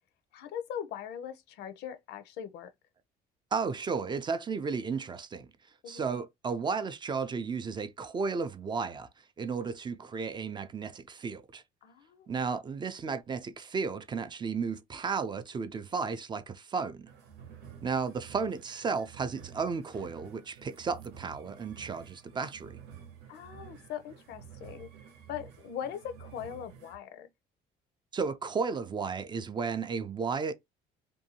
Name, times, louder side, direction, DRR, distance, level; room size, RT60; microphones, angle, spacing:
voice 1, 0.3-2.7 5.8-6.1 11.8-12.4 23.3-24.9 25.3-27.3, left 9 dB, 75° left, 0.5 m, -40 dB
voice 2, 3.5-5.5 5.9-9.1 9.4-11.6 12.3-17.1 17.8-22.8 28.1-30.5, right 5 dB, 25° right, 0.3 m, -33 dB
sound 1, 17.1-27.0, right 8 dB, 80° right, 0.9 m, -51 dB
2.6 x 2.2 x 2.7 m
cardioid pair, 110°, 17 cm